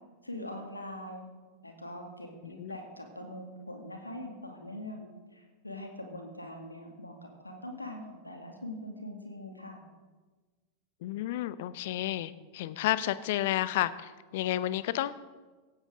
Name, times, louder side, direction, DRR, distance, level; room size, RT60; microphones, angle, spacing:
voice 1, 0.2-1.3 1.6-9.8, left 1 dB, 85° left, 3 dB, 2.3 m, -42 dB
voice 2, 2.4-2.8 11.0-15.1, left 14 dB, 50° left, 16 dB, 0.7 m, -31 dB
17.0 x 16.5 x 3.8 m, 1.3 s
figure-of-eight pair, 90°, 0 cm